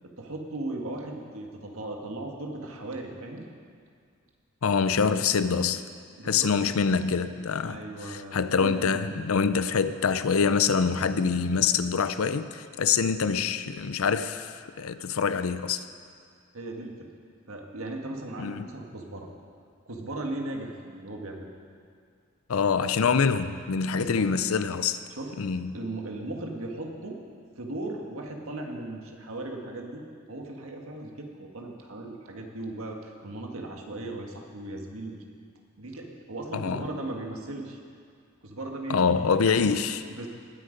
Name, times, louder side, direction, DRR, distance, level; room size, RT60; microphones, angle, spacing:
voice 1, 0.2-3.5 6.2-6.7 7.6-9.0 16.5-17.1 17.5-19.3 19.8-21.5 23.9-24.3 25.1-25.4 25.7-27.2 27.6-35.2 35.8-37.8 38.4-39.7 40.1-40.3, right 2 dB, 85° right, 1.7 m, -37 dB
voice 2, 4.6-5.8 6.2-15.8 18.4-18.7 22.5-25.0 25.4-25.8 36.5-36.8 38.9-40.0, left 5 dB, 85° left, 0.5 m, -25 dB
19.5 x 8.3 x 5.2 m
head